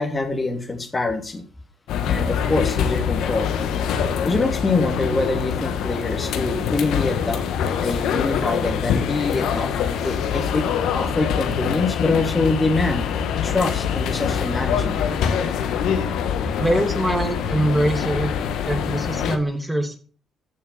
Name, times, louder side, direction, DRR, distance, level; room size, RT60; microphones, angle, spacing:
voice 1, 0.0-1.4 2.1-3.5 4.2-7.4 7.8-9.7 10.0-10.6 10.9-13.1 13.4-15.0, left 3 dB, 25° left, 6 dB, 2.6 m, -24 dB
sound 1, 1.9-19.4, left 8 dB, 85° left, 1.6 m, -24 dB
voice 2, 16.6-18.3 18.6-20.0, right 1 dB, 5° right, 5 dB, 2.6 m, -23 dB
14.5 x 6.6 x 5.8 m, 0.40 s
cardioid pair, 90°, 0 cm